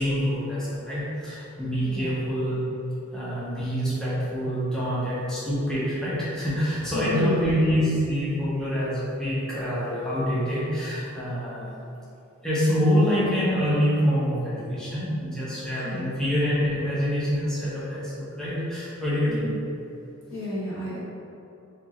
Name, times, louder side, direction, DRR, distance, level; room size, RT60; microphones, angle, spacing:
voice 1, 0.0-2.6 3.1-11.8 12.4-19.5, equal, 5° left, -10 dB, 0.9 m, -26 dB
voice 2, 6.9-7.4 15.8-16.1 19.3-19.5 20.3-21.0, left 1 dB, 80° left, -9 dB, 1.3 m, -31 dB
4.4 x 3.0 x 2.5 m, 2.8 s
head